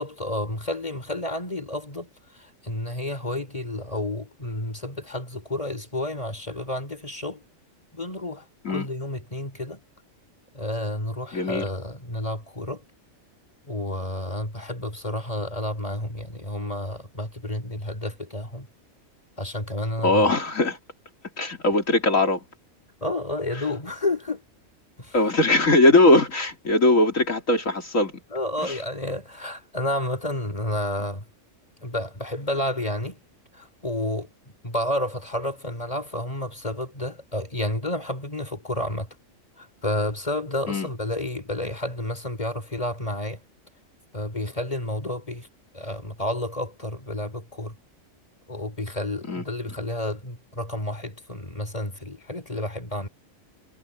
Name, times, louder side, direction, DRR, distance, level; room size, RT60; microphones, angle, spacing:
voice 1, 0.0-7.4 7.9-9.8 10.5-12.8 13.6-18.7 19.4-20.3 23.0-24.4 25.0-25.2 28.3-31.2 31.8-33.2 33.5-34.3 34.6-39.1 39.6-43.4 44.1-45.5 45.7-47.7 48.5-53.1, left 1 dB, 25° left, 5.0 m, -30 dB
voice 2, 11.3-11.6 20.0-20.8 21.4-22.4 25.1-28.1 28.6-28.7 40.7-40.9 49.3-49.4, left 2 dB, 80° left, 3.5 m, -20 dB
omnidirectional pair, 1.4 m